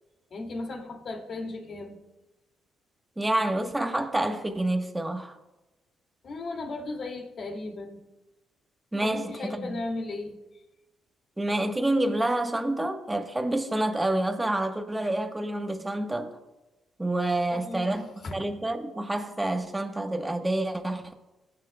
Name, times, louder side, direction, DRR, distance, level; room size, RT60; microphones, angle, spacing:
voice 1, 0.3-2.0 6.2-8.0 9.0-10.4 17.5-18.4, left 2 dB, 50° left, 2.4 m, -36 dB
voice 2, 3.2-5.4 8.9-9.6 11.4-16.4 17.0-18.0 18.3-21.1, right 1 dB, 10° right, 1.2 m, -28 dB
22.0 x 9.3 x 2.3 m
cardioid pair, 90°, 0 cm